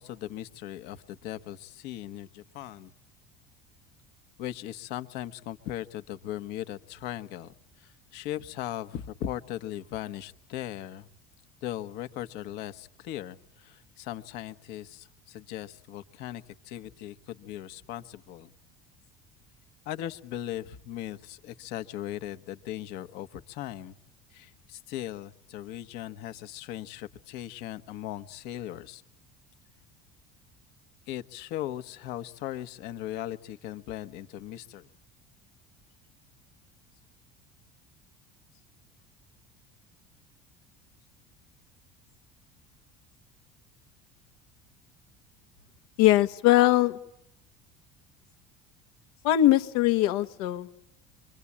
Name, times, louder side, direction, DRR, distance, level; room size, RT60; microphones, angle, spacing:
voice 1, 0.0-2.9 4.4-11.1 11.6-18.5 19.8-24.0 24.3-29.0 31.1-34.9, left 12 dB, 65° left, 10 dB, 1.4 m, -38 dB
voice 2, 46.0-47.0 49.2-50.7, left 14 dB, 85° left, 10 dB, 1.6 m, -21 dB
26.0 x 24.5 x 8.7 m, 0.75 s
cardioid pair, 155°, 18 cm